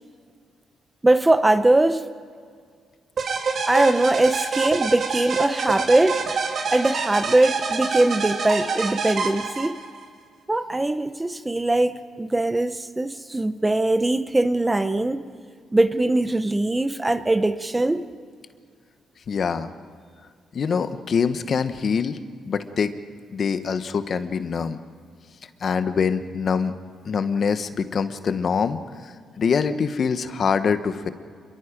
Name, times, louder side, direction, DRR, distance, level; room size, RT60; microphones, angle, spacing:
voice 1, 1.0-2.0 3.7-6.2 6.7-9.8 10.5-15.2 15.7-18.0, right 2 dB, 10° right, 11 dB, 0.8 m, -21 dB
sound 1, 3.2-10.0, right 5 dB, 50° right, 2.5 m, -26 dB
voice 2, 19.3-19.7 20.5-22.2 22.4-22.9 23.3-24.8 25.6-26.7 27.0-31.1, left 6 dB, 45° left, 10 dB, 1.1 m, -24 dB
28.0 x 22.5 x 5.2 m, 2.1 s
cardioid pair, 130°, 0 cm